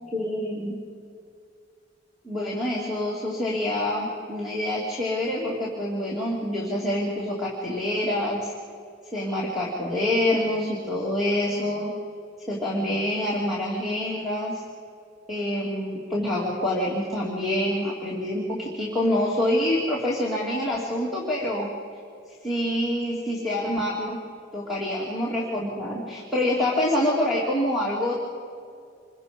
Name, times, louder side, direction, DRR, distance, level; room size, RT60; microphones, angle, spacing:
voice 1, 0.1-0.8 2.2-8.5 9.1-11.9 12.5-14.6 15.3-21.7 22.4-24.2 24.5-28.1, left 1 dB, ahead, -6 dB, 2.9 m, -26 dB
27.5 x 23.0 x 5.4 m, 2.3 s
head